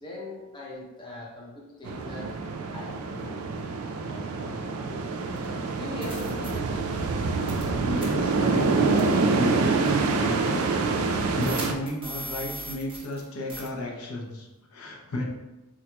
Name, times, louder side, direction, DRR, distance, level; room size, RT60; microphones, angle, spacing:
voice 1, 0.0-2.4 2.7-3.6 4.1-5.3 5.8-6.9, left 2 dB, 20° left, -4 dB, 0.6 m, -41 dB
sound 1, 1.8-11.7, right 3 dB, 70° right, 0.3 m, -26 dB
sound 2, 5.4-5.5 6.0-6.5 7.5-7.7 8.0-8.1 9.0-9.1 9.9-10.0 11.4-13.2 13.5-13.7, right 2 dB, 25° right, 0.6 m, -38 dB
voice 2, 7.9-9.0 9.3-10.6 10.9-15.3, left 1 dB, 75° left, -1 dB, 0.6 m, -33 dB
3.8 x 2.9 x 2.2 m, 1.0 s
head